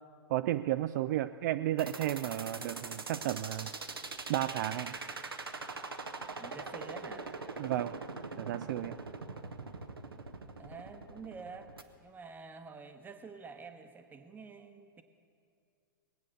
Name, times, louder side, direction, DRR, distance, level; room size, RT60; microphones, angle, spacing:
voice 1, 0.3-3.7 4.3-4.9 7.6-8.0 8.4-9.0, right 14 dB, 50° right, 10 dB, 0.4 m, -33 dB
sound 1, 1.8-11.8, right 4 dB, 90° right, 0.9 m, -42 dB
voice 2, 6.4-7.3 10.6-11.7 12.0-15.0, right 4 dB, 15° right, 7 dB, 1.0 m, -48 dB
20.5 x 8.6 x 6.5 m, 2.3 s
figure-of-eight pair, 105°, 12 cm